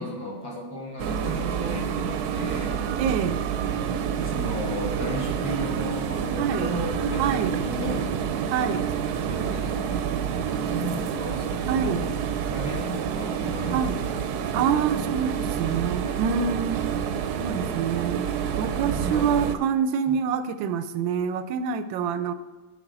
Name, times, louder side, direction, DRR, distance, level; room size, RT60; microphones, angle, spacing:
voice 1, 0.0-2.7 4.2-8.0 9.3-10.0 10.3-12.2 12.5-14.1 15.5-16.1 18.8-19.5 20.1-20.2, equal, 55° left, -4 dB, 2.5 m, -35 dB
sound 1, 1.0-19.6, right 7 dB, 70° right, 1.0 m, -28 dB
voice 2, 3.0-3.4 6.4-6.7 7.2-7.5 8.5-8.9 11.7-12.0 13.7-14.0 14.5-16.8 17.4-18.3 18.6-22.3, right 7 dB, 90° right, 12 dB, 1.3 m, -26 dB
10.0 x 4.9 x 3.9 m, 1.3 s
omnidirectional pair, 2.0 m